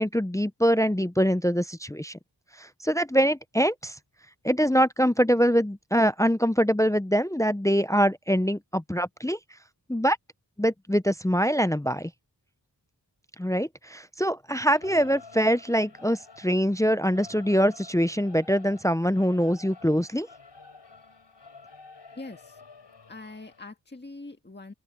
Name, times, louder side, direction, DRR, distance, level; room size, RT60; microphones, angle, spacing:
voice 1, 0.0-2.2 2.6-3.9 4.4-9.4 9.9-10.2 10.6-12.1 13.4-20.3, equal, 10° left, 0.5 m, -24 dB
Singing / Musical instrument, 14.7-23.6, left 4 dB, 80° left, 6.6 m, -50 dB
voice 2, 22.1-22.6 23.1-24.7, left 2 dB, 25° left, 1.7 m, -43 dB
open air
wide cardioid pair, 85°, 42 cm